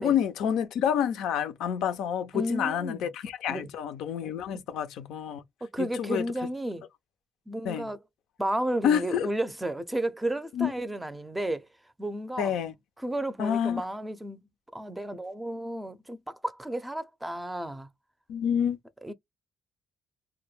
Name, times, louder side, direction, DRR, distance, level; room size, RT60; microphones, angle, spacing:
voice 1, 0.0-5.4 5.8-6.3 7.7-7.9 8.8-9.3 10.5-10.7 12.4-12.7 13.4-13.8 18.3-18.8, left 8 dB, 85° left, 0.5 m, -28 dB
voice 2, 2.3-3.1 3.5-3.7 4.5-4.6 5.6-6.9 7.5-8.0 8.4-11.7 12.0-12.5 13.0-14.4 14.7-17.9 19.0-19.1, right 1 dB, 10° right, 0.5 m, -32 dB
2.2 x 2.1 x 3.1 m
cardioid pair, 90°, 0 cm